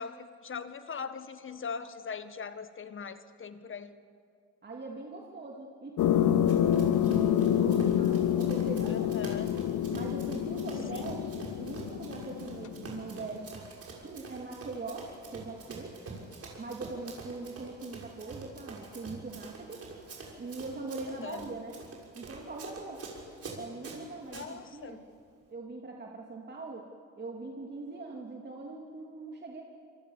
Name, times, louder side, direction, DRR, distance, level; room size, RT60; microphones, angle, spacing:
voice 1, 0.0-4.0 8.9-9.6 10.9-11.1 21.2-21.5 24.3-25.0, left 5 dB, 40° left, 12 dB, 1.6 m, -41 dB
voice 2, 4.6-9.2 9.9-13.7 14.0-16.0 16.6-19.8 20.3-21.8 22.1-23.0 23.6-25.0 25.5-26.9 27.2-29.6, right 3 dB, 35° right, 0 dB, 2.7 m, -41 dB
sound 1, 6.0-13.2, left 10 dB, 75° left, 1.1 m, -28 dB
Run, 6.5-24.5, right 3 dB, 50° right, 6.2 m, -46 dB
26.5 x 24.0 x 7.3 m, 2.2 s
cardioid pair, 90°, 30 cm